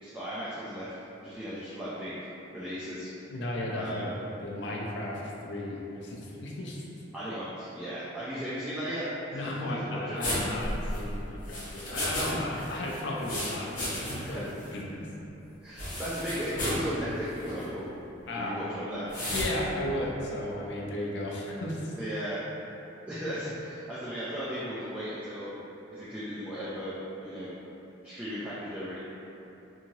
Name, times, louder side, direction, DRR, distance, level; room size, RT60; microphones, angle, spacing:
voice 1, 0.0-0.9 1.2-2.1 2.5-3.1 3.7-4.1 7.1-10.2 12.2-12.4 14.2-14.4 15.6-17.9 18.4-19.1 22.0-22.4 23.1-25.5 25.9-26.9 27.2-27.5 28.0-29.0, equal, 5° right, -11 dB, 0.3 m, -36 dB
voice 2, 3.3-6.9 9.3-15.1 18.3-18.6 19.3-21.9, left 1 dB, 65° left, -3 dB, 0.5 m, -35 dB
sound 1, 10.2-12.3 12.6-14.4 14.6-14.7 15.8-16.9 17.4-17.6 19.1-19.5, left 1 dB, 45° left, 0.9 m, -33 dB
2.8 x 2.7 x 2.7 m, 3.0 s
head